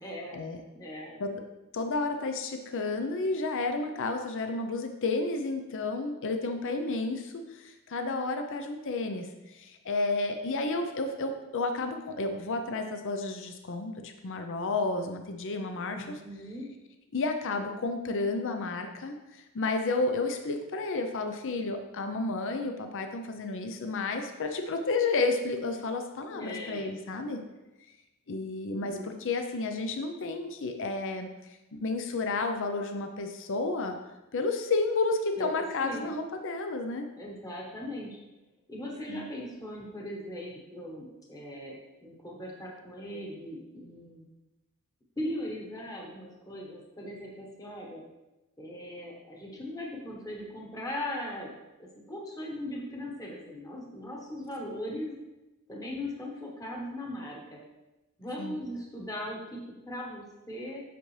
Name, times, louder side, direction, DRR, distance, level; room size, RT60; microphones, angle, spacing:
voice 1, 0.0-0.4 0.7-1.2 15.8-16.7 26.3-26.8 28.7-29.1 35.4-36.1 37.2-38.2 38.7-44.2 45.2-48.0 48.6-51.5 52.1-55.1 55.7-57.6 58.2-60.8, left 1 dB, 15° left, -2 dB, 1.1 m, -39 dB
voice 2, 1.7-16.2 17.1-19.2 19.5-27.4 28.3-34.0 34.3-37.1 39.1-39.3 58.4-58.6, left 3 dB, 60° left, 6 dB, 0.6 m, -31 dB
8.0 x 6.0 x 3.2 m, 1.0 s
head